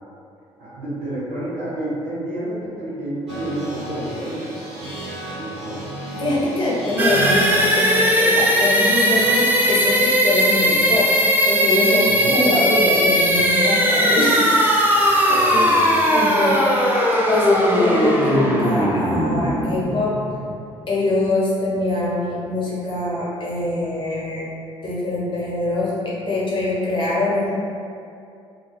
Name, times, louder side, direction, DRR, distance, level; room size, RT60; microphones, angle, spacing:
voice 1, 0.6-4.9 5.3-5.8 12.1-12.4 15.3-16.0, right 1 dB, 60° right, -10 dB, 0.7 m, -30 dB
sound 1, 3.3-10.1, right 2 dB, 75° right, 1.4 m, -32 dB
voice 2, 6.1-14.5 15.1-15.7 16.1-16.8 17.3-20.2 20.9-24.5 24.8-27.5, left 2 dB, 35° left, -6 dB, 0.8 m, -23 dB
sound 2, 7.0-20.7, equal, 10° right, 0.4 m, -18 dB
2.5 x 2.1 x 2.3 m, 2.5 s
figure-of-eight pair, 50°, 15 cm